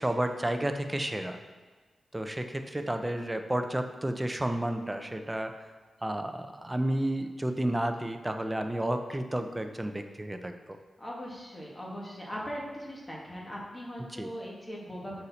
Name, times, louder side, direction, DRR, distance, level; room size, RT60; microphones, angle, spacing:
voice 1, 0.0-1.4 2.1-5.5 6.0-10.8 14.1-14.3, right 1 dB, 15° right, 6 dB, 0.6 m, -31 dB
voice 2, 2.7-3.1 11.0-15.2, equal, 20° left, -4 dB, 1.6 m, -40 dB
6.6 x 4.2 x 4.1 m, 1.4 s
cardioid pair, 70°, 0 cm